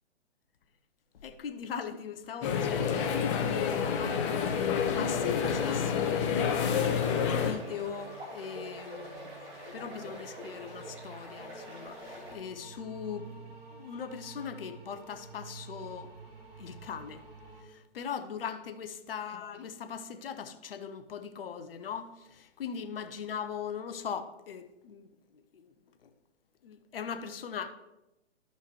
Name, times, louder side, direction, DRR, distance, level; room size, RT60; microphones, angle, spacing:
voice 1, 1.2-4.5 4.9-9.3 9.5-16.1 16.6-17.2 17.6-25.7 26.0-26.1 26.6-27.7, left 7 dB, 55° left, 0.9 m, -40 dB
sound 1, 2.4-7.5, left 7 dB, 25° left, 0.9 m, -28 dB
sound 2, 2.8-12.3, equal, 15° right, 2.3 m, -46 dB
sound 3, 3.9-17.6, right 3 dB, 60° right, 2.6 m, -50 dB
13.5 x 5.6 x 3.2 m
figure-of-eight pair, 130°, 34 cm